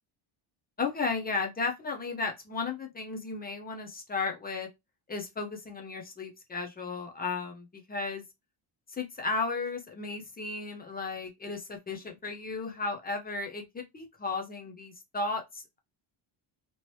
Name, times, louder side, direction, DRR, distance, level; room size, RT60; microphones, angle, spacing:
voice 1, 0.8-4.7 5.1-8.2 8.9-15.8, left 4 dB, 20° left, 0.3 m, -34 dB
2.9 x 2.8 x 2.9 m
cardioid pair, 180°, 50 cm